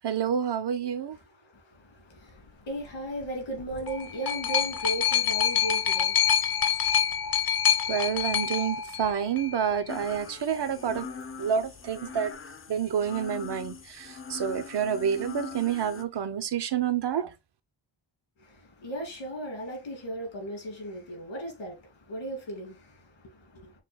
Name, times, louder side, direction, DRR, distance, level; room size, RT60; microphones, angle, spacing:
voice 1, 0.0-1.2 7.9-11.1 11.4-12.3 12.7-17.3, right 8 dB, 65° right, 0.8 m, -28 dB
voice 2, 1.5-6.7 18.4-23.7, right 1 dB, 80° left, 2.4 m, -37 dB
sound 1, 3.6-9.6 10.5-10.6, left 8 dB, 50° left, 0.8 m, -26 dB
sound 2, 9.9-16.0, left 5 dB, 30° left, 0.5 m, -42 dB
6.5 x 2.4 x 3.4 m
wide cardioid pair, 105°, 45 cm